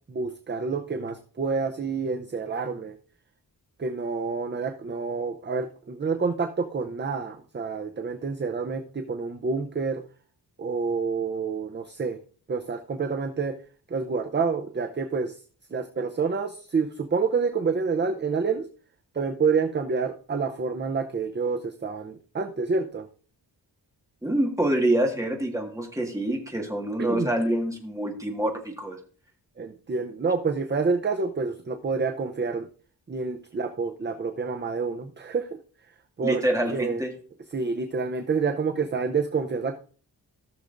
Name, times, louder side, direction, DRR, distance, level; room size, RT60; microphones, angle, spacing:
voice 1, 0.1-3.0 3.8-10.0 10.6-12.2 12.5-13.6 13.9-15.4 15.7-18.7 19.1-23.1 27.0-27.3 29.6-32.7 33.1-35.6 36.2-36.4 36.7-37.0 37.5-39.8, right 4 dB, 30° right, 7 dB, 0.6 m, -28 dB
voice 2, 24.2-29.0 36.2-37.1, right 1 dB, 10° right, 1 dB, 1.7 m, -26 dB
16.5 x 6.4 x 2.6 m, 0.42 s
wide cardioid pair, 155°, 40 cm